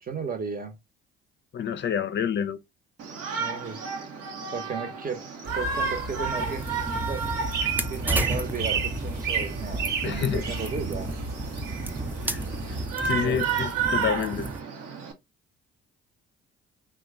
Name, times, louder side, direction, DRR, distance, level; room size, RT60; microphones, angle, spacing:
voice 1, 0.0-0.8 3.4-3.9 4.5-5.2 5.5-6.7 7.1-7.2 7.9-11.2 13.2-13.5 14.3-14.4, right 5 dB, 30° right, 1.0 m, -34 dB
voice 2, 1.5-2.6 10.0-10.5 12.3-12.4 12.7-14.5, left 8 dB, 40° left, 0.6 m, -28 dB
Shout, 3.0-15.1, right 5 dB, 55° right, 0.9 m, -33 dB
sound 1, 5.4-12.9, right 4 dB, 75° right, 1.2 m, -32 dB
sound 2, 6.3-14.6, right 2 dB, 5° right, 0.4 m, -34 dB
2.9 x 2.3 x 3.6 m
hypercardioid pair, 50°, 29 cm